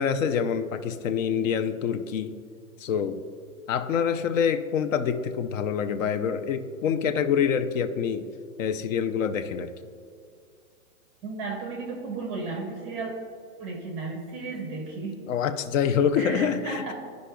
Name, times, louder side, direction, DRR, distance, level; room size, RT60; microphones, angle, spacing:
voice 1, 0.0-2.4 2.8-3.2 3.7-8.3 8.6-9.7 15.3-16.9, left 7 dB, 65° left, 10 dB, 0.6 m, -26 dB
voice 2, 11.2-13.1 13.6-15.2 16.2-16.9, right 3 dB, 15° right, 1 dB, 0.5 m, -34 dB
12.5 x 5.2 x 2.3 m, 2.2 s
hypercardioid pair, 155°, 42 cm